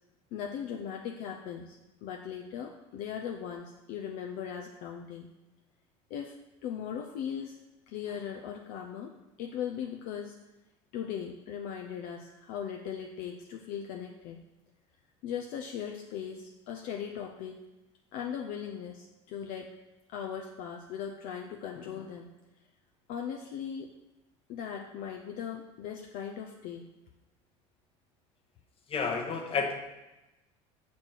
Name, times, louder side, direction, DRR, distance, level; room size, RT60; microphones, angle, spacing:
voice 1, 0.3-5.3 6.1-6.4 6.6-7.6 7.9-9.1 9.4-10.4 10.9-14.4 15.2-17.6 18.1-19.7 20.1-22.3 23.1-23.9 24.5-26.9, left 8 dB, 60° left, 2 dB, 0.6 m, -38 dB
voice 2, 28.9-29.7, left 5 dB, 35° left, 3 dB, 1.1 m, -30 dB
6.3 x 4.3 x 4.4 m, 1.0 s
supercardioid pair, 100°, 16 cm